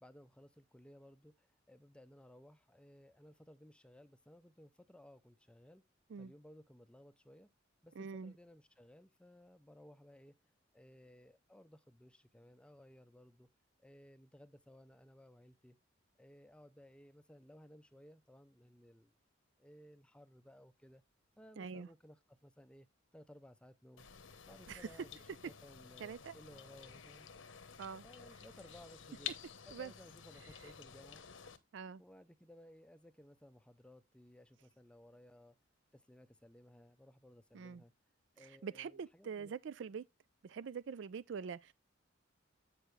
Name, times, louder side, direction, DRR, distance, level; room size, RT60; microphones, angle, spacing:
voice 1, 0.0-5.8 6.2-7.5 7.8-10.4 10.7-13.5 13.8-15.8 16.2-19.2 19.6-21.0 21.4-22.9 23.1-24.1 24.5-27.3 28.0-29.4 29.6-31.3 32.0-35.6 35.9-37.9 38.4-39.5, equal, 5° left, 0.5 m, -59 dB
voice 2, 8.0-8.3 21.6-21.9 24.7-24.9 26.0-26.3 27.8-28.0 29.7-29.9 31.7-32.0 37.5-37.8 38.4-40.0 40.4-41.7, right 6 dB, 65° right, 0.4 m, -44 dB
sound 1, 24.0-31.6, left 8 dB, 75° left, 0.9 m, -51 dB
7.9 x 6.7 x 3.2 m
head